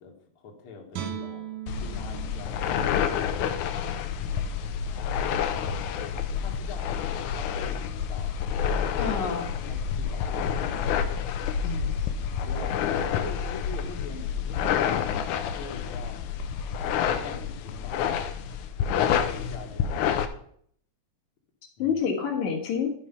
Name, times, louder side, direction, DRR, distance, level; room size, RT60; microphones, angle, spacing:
voice 1, 0.0-1.5 1.8-3.1 4.3-4.7 6.2-8.3 8.7-9.2 9.6-11.1 12.5-16.2 16.8-18.1 18.9-20.1 21.8-22.0, left 5 dB, 50° left, 1 dB, 1.9 m, -43 dB
Guitar, 0.9-4.1 4.5-4.7, right 9 dB, 90° right, 2.5 m, -40 dB
sound 1, 1.7-20.3, left 8 dB, 85° left, 2.2 m, -28 dB
voice 2, 9.0-9.6 11.5-11.9 21.8-22.9, left 6 dB, 70° left, 1 dB, 2.7 m, -28 dB
11.5 x 4.7 x 5.5 m, 0.63 s
omnidirectional pair, 3.5 m